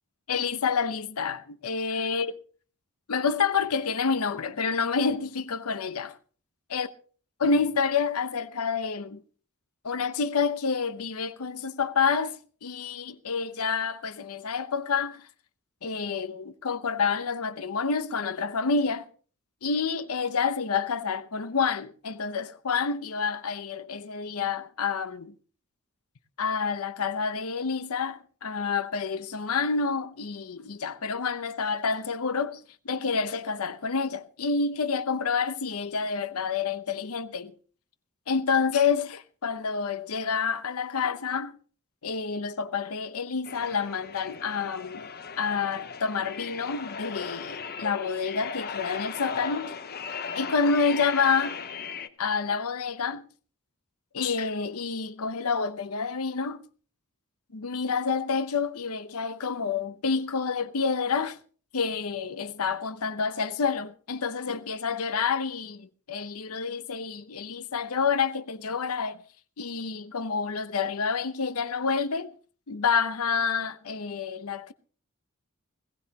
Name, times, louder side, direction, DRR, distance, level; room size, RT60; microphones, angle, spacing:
voice 1, 0.3-2.3 3.1-6.1 6.7-6.9 7.4-9.2 9.8-15.3 15.8-19.1 19.6-25.3 26.4-37.5 38.3-41.5 42.0-45.1 45.4-49.8 50.3-51.6 52.2-53.2 54.1-56.6 57.5-61.4 61.7-69.2 69.6-72.3 72.7-74.7, left 5 dB, 80° left, 0.8 m, -28 dB
sound 1, 43.5-52.1, left 6 dB, 45° left, 0.9 m, -37 dB
20.0 x 16.0 x 2.9 m
head